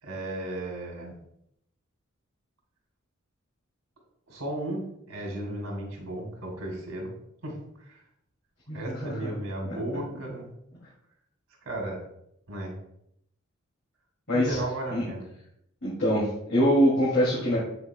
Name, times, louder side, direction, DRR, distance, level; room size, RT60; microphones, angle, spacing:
voice 1, 0.0-1.1 4.3-7.1 7.4-8.0 8.7-10.5 11.6-12.0 12.5-12.7 14.3-15.3, right 1 dB, 75° right, 0 dB, 2.4 m, -35 dB
voice 2, 8.7-9.3 14.3-14.6 14.9-15.1 15.8-17.6, equal, 60° left, -7 dB, 2.4 m, -24 dB
8.2 x 6.9 x 2.2 m, 0.76 s
head